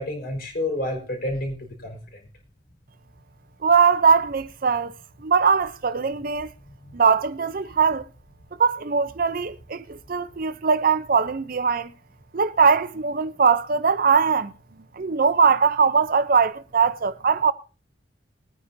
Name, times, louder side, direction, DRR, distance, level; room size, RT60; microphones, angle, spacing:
voice 1, 0.0-2.2, left 1 dB, 55° left, 4.5 m, -29 dB
voice 2, 3.6-4.9 5.2-6.5 6.9-8.0 8.6-11.9 12.3-14.5 15.0-17.5, right 5 dB, 50° right, 0.6 m, -21 dB
21.0 x 9.5 x 2.7 m
head